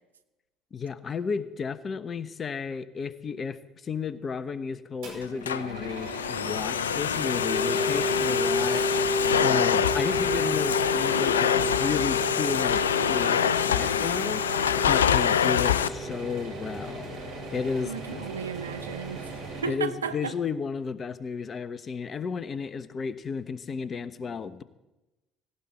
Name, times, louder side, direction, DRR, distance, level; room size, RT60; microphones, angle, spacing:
voice 1, 0.7-17.2 17.5-18.3 19.7-24.6, left 5 dB, 35° left, 1.1 m, -33 dB
sound 1, 5.0-19.6, right 2 dB, 60° right, 8.0 m, -40 dB
Domestic sounds home sounds, 5.2-15.9, left 8 dB, 80° left, 0.4 m, -25 dB
sound 2, 6.9-17.8, left 1 dB, 40° right, 2.0 m, -32 dB
voice 2, 17.8-19.3 19.6-20.4, right 6 dB, 85° right, 0.8 m, -34 dB
18.0 x 17.0 x 4.5 m
figure-of-eight pair, 55°, 0 cm